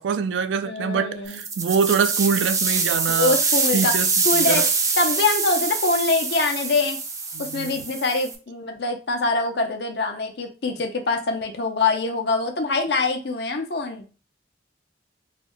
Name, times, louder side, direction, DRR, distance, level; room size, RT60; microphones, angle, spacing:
voice 1, 0.0-3.4 3.7-4.7 7.3-7.9, right 6 dB, 85° right, 0.3 m, -24 dB
voice 2, 0.6-1.4 3.1-3.9 4.2-4.6 5.0-7.0 7.4-14.0, left 3 dB, 60° left, 0.6 m, -24 dB
sound 1, 1.3-8.4, right 4 dB, 20° right, 0.4 m, -24 dB
3.9 x 2.1 x 3.0 m
head